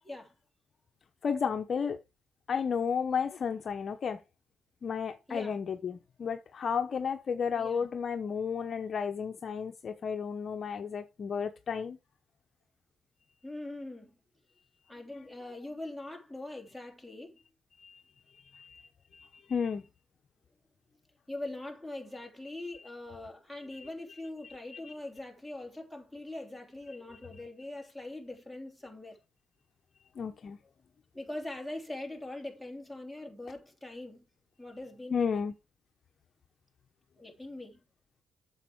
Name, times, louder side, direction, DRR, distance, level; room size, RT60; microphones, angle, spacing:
voice 1, 1.2-2.0 2.5-4.2 4.8-12.0 17.8-18.0 18.5-19.8 24.4-24.9 30.2-30.6 35.1-35.5, left 6 dB, 50° left, 1.0 m, -33 dB
voice 2, 7.5-7.9 13.4-14.1 14.9-17.4 21.3-29.2 31.1-34.2 34.6-35.5 37.2-37.8, left 2 dB, ahead, 3.3 m, -42 dB
8.2 x 7.3 x 4.8 m
cardioid pair, 90°, 0 cm